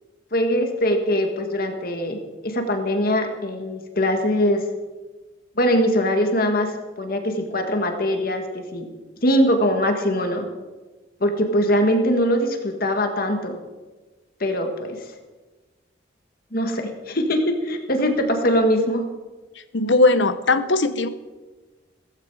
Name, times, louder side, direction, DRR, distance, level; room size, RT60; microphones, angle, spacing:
voice 1, 0.3-4.6 5.6-8.9 9.2-10.5 11.2-13.6 14.4-15.1 16.5-19.0, equal, 50° left, 4 dB, 1.9 m, -22 dB
voice 2, 19.7-21.1, left 2 dB, 70° left, 11 dB, 1.0 m, -18 dB
16.0 x 14.5 x 4.9 m, 1.2 s
head